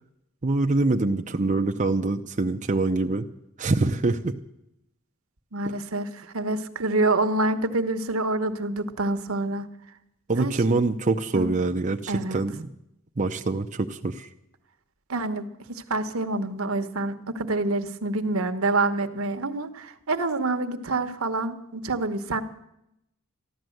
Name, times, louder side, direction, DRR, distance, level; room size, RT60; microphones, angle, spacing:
voice 1, 0.4-3.3 3.6-4.3 10.3-12.7 13.2-14.3, right 2 dB, 35° right, 4 dB, 0.7 m, -24 dB
voice 2, 5.5-9.7 10.4-10.5 11.3-11.5 12.1-12.4 15.1-22.4, right 2 dB, 75° right, 9 dB, 1.1 m, -27 dB
14.0 x 11.5 x 7.8 m, 0.81 s
head